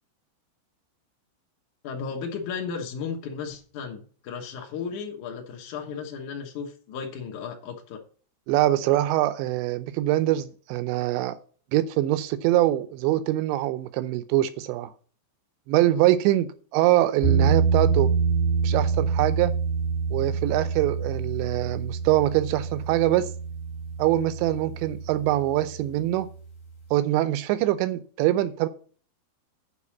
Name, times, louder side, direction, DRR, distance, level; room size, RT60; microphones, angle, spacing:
voice 1, 1.8-8.0, left 6 dB, 80° left, 1.7 m, -35 dB
voice 2, 8.5-11.4 11.7-14.9 15.7-18.1 18.6-19.5 20.1-23.3 24.0-26.3 26.9-28.7, right 14 dB, 80° right, 2.7 m, -23 dB
sound 1, 17.2-26.1, right 5 dB, 60° left, 1.1 m, -26 dB
8.3 x 5.0 x 7.1 m
omnidirectional pair, 5.5 m